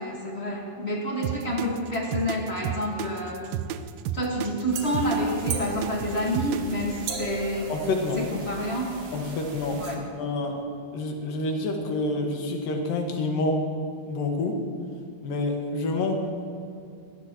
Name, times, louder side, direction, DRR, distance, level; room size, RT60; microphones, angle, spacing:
voice 1, 0.0-3.4 4.1-7.7 8.2-9.0 9.8-10.1, equal, 40° left, -1 dB, 0.9 m, -28 dB
sound 1, 1.2-6.9, right 11 dB, 85° right, 2.4 m, -32 dB
sound 2, 4.7-10.0, right 5 dB, 55° right, 2.5 m, -37 dB
voice 2, 7.7-8.2 9.1-10.6 10.9-13.6 14.1-14.6 15.2-16.2, left 2 dB, 75° left, 2 dB, 3.3 m, -28 dB
22.5 x 18.0 x 3.0 m, 2.4 s
omnidirectional pair, 4.0 m